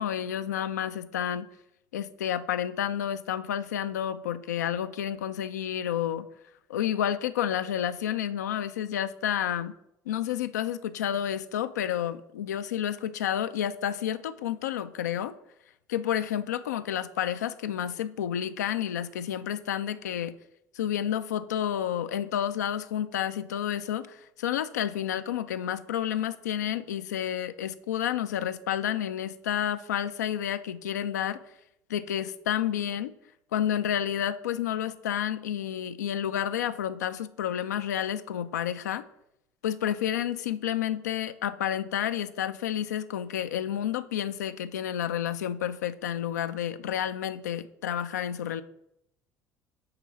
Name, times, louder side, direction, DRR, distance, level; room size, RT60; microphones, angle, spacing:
voice 1, 0.0-1.5 1.9-6.3 6.7-9.7 10.1-15.3 15.9-20.3 20.8-31.4 31.9-33.1 33.5-39.0 39.6-48.6, left 10 dB, 85° left, 12 dB, 0.4 m, -30 dB
8.8 x 3.8 x 6.1 m, 0.83 s
hypercardioid pair, 65°, 9 cm